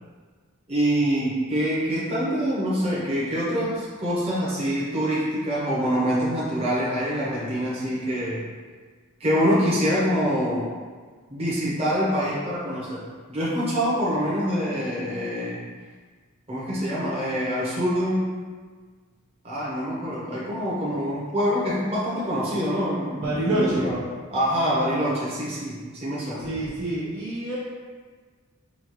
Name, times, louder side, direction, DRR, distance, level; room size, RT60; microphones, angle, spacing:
voice 1, 0.7-8.4 9.2-10.7 11.3-13.0 13.3-15.6 16.5-18.3 19.4-24.0 24.3-26.4, equal, 30° right, -8 dB, 0.9 m, -25 dB
voice 2, 23.2-23.9 26.4-27.5, right 1 dB, 85° right, -10 dB, 1.0 m, -26 dB
5.2 x 2.4 x 3.1 m, 1.5 s
head